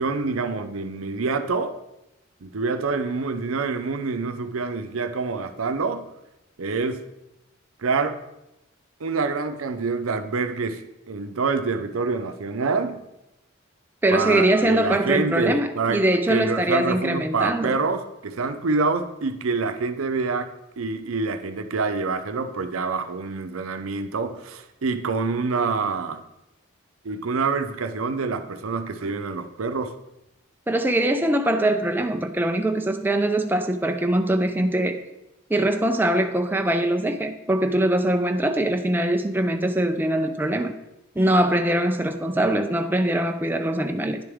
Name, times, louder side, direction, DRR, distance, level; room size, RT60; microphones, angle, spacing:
voice 1, 0.0-1.8 2.4-6.1 6.6-7.0 7.8-8.2 9.0-13.0 14.1-26.2 27.0-29.9, right 4 dB, 85° right, 0.6 m, -26 dB
voice 2, 14.0-17.8 30.7-35.0 35.5-40.7 41.2-44.2, right 1 dB, 10° right, 0.4 m, -22 dB
9.9 x 6.8 x 3.6 m
head